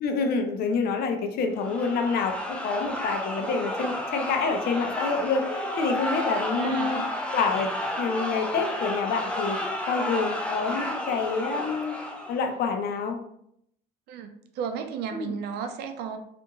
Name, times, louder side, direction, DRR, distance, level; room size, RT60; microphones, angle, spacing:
voice 1, 0.0-7.0 7.3-7.7 8.0-9.6 9.9-12.0 12.3-13.2 15.1-15.4, left 4 dB, 65° left, 5 dB, 0.5 m, -27 dB
sound 1, 1.6-12.5, left 1 dB, 5° left, 0.4 m, -31 dB
voice 2, 6.5-7.1 14.1-16.2, right 7 dB, 75° right, 6 dB, 0.4 m, -34 dB
2.8 x 2.5 x 2.3 m, 0.72 s
cardioid pair, 110°, 17 cm